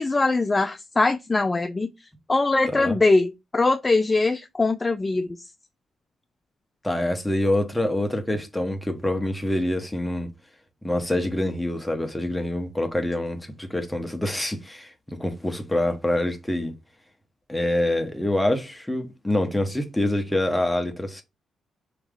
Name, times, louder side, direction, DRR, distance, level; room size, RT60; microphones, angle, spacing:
voice 1, 0.0-1.9 2.3-5.3, left 3 dB, 25° left, 0.4 m, -22 dB
voice 2, 6.8-10.3 10.8-16.7 17.5-21.2, left 1 dB, 5° left, 1.1 m, -26 dB
4.8 x 3.1 x 3.7 m
cardioid pair, 90°, 0 cm